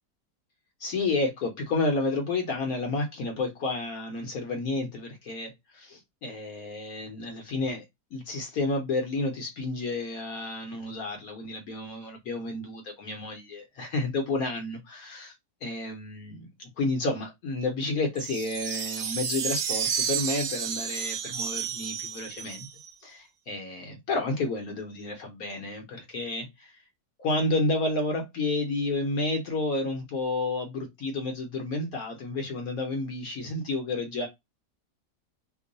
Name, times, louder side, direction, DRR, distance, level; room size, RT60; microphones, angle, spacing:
voice 1, 0.8-7.8 8.1-15.3 15.6-22.7 23.0-26.7 27.2-34.3, left 2 dB, 65° left, 1.2 m, -31 dB
sound 1, 18.2-22.9, right 7 dB, 70° right, 0.5 m, -31 dB
3.0 x 2.2 x 3.8 m
omnidirectional pair, 1.7 m